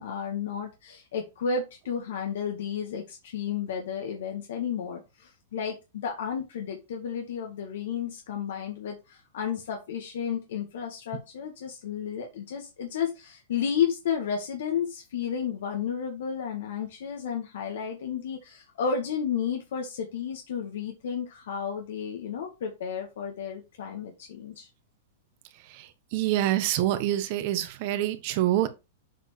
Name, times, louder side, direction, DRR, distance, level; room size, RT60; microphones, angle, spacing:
voice 1, 0.0-24.7, left 7 dB, 75° left, 1.7 m, -32 dB
voice 2, 25.7-28.7, right 13 dB, 45° right, 1.2 m, -26 dB
7.5 x 4.5 x 3.3 m
supercardioid pair, 150°, 0 cm